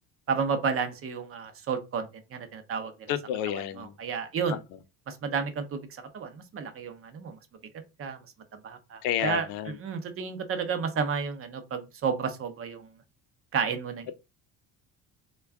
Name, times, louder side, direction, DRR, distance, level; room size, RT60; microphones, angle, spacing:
voice 1, 0.3-2.9 3.5-4.6 5.1-7.4 8.0-8.2 8.6-9.5 9.8-12.9 13.5-14.1, right 6 dB, 35° right, 0.6 m, -31 dB
voice 2, 3.1-3.9 4.5-4.6 9.0-9.8, left 11 dB, 90° left, 0.6 m, -30 dB
3.4 x 2.2 x 3.4 m
cardioid pair, 130°, 39 cm